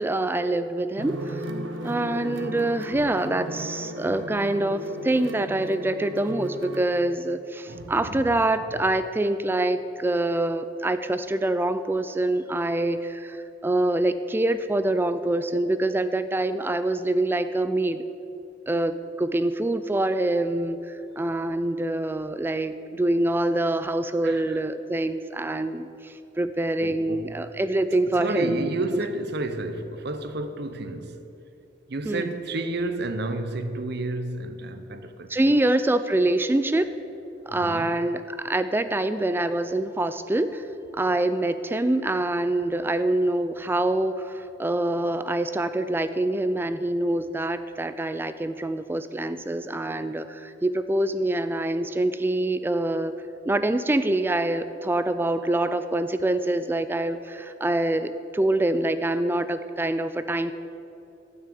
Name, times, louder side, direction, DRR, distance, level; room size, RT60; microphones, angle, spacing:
voice 1, 0.0-1.5 1.8-18.1 18.7-28.7 32.0-32.3 35.3-36.9 37.5-40.7 40.9-53.1 53.5-60.5, right 1 dB, 10° right, 0.3 m, -25 dB
sound 1, 1.0-6.8, right 1 dB, 90° right, 1.1 m, -35 dB
voice 2, 7.7-8.3 24.2-24.6 26.8-27.4 28.2-31.2 31.9-35.6 37.5-37.9, right 2 dB, 60° right, 0.8 m, -31 dB
12.5 x 6.5 x 8.5 m
head